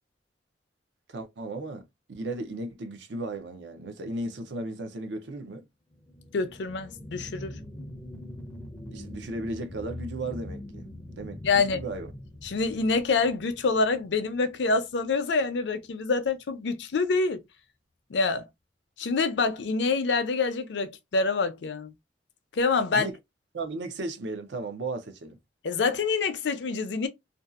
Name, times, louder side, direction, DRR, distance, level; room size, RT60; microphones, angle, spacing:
voice 1, 1.1-5.7 8.9-10.9 11.2-12.1 22.9-23.2 23.5-25.4, right 2 dB, 75° right, 0.6 m, -35 dB
sound 1, 5.9-15.0 15.4-15.5, left 1 dB, 10° left, 0.4 m, -43 dB
voice 2, 6.3-7.6 11.4-11.8 12.4-17.4 18.1-18.4 19.0-21.9 22.5-23.1 25.6-27.1, left 4 dB, 70° left, 0.5 m, -26 dB
2.6 x 2.3 x 2.3 m
head